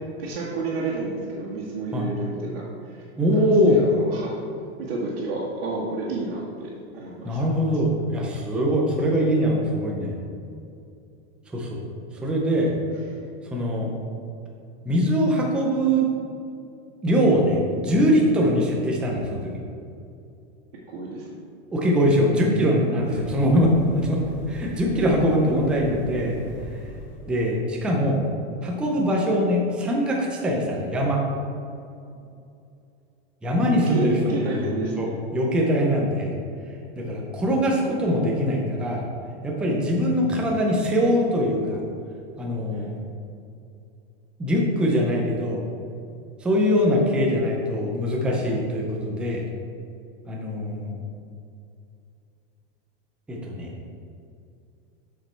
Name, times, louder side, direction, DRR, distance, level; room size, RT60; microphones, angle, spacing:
voice 1, 0.2-3.1 3.4-4.4 4.8-7.5 20.9-21.3 23.0-23.1 33.7-35.0 42.7-42.9, right 2 dB, 70° right, -6 dB, 1.7 m, -30 dB
voice 2, 3.2-3.8 7.2-10.2 11.5-11.9 12.2-12.7 13.5-13.9 14.8-16.1 17.0-19.6 21.7-26.4 27.3-28.2 28.6-31.2 33.4-34.7 35.0-36.3 37.0-39.0 39.4-41.8 42.4-43.0 44.4-45.6 46.4-49.4 50.3-50.9 53.3-53.7, equal, 5° right, -2 dB, 0.4 m, -22 dB
sound 1, 23.0-27.5, left 2 dB, 25° left, 0.8 m, -39 dB
7.4 x 5.2 x 4.3 m, 2.5 s
supercardioid pair, 165°, 31 cm